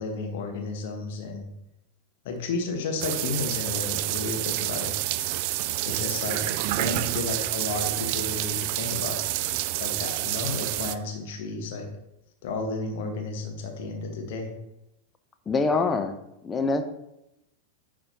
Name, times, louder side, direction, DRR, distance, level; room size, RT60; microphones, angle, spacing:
voice 1, 0.0-1.5 2.2-5.3 5.8-6.4 6.7-9.2 9.8-11.9 12.4-14.5, left 3 dB, 50° left, 3 dB, 1.3 m, -32 dB
sound 1, 3.0-11.0, right 15 dB, 45° right, 0.3 m, -28 dB
voice 2, 15.5-16.2 16.4-16.8, left 3 dB, 20° left, 8 dB, 0.6 m, -24 dB
9.9 x 5.1 x 2.8 m, 0.87 s
figure-of-eight pair, 90°, 0 cm